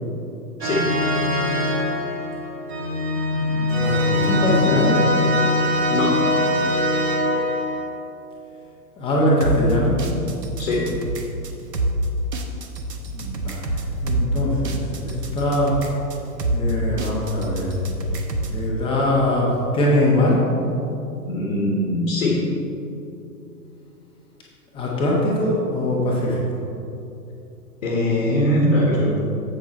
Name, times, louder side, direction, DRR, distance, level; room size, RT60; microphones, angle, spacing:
voice 1, 0.6-0.9 5.9-6.2 10.6-10.9 21.2-22.5 27.8-29.2, left 1 dB, 45° left, -2 dB, 1.4 m, -21 dB
sound 1, 0.6-7.9, left 1 dB, 40° right, 1.2 m, -22 dB
voice 2, 3.3-5.1 9.0-10.0 13.1-15.8 16.5-17.8 18.5-20.4 24.7-26.4, left 1 dB, 10° left, -4 dB, 1.2 m, -22 dB
sound 2, 9.4-18.6, right 1 dB, 70° right, 1.1 m, -27 dB
7.6 x 7.1 x 4.3 m, 2.8 s
figure-of-eight pair, 120°, 50 cm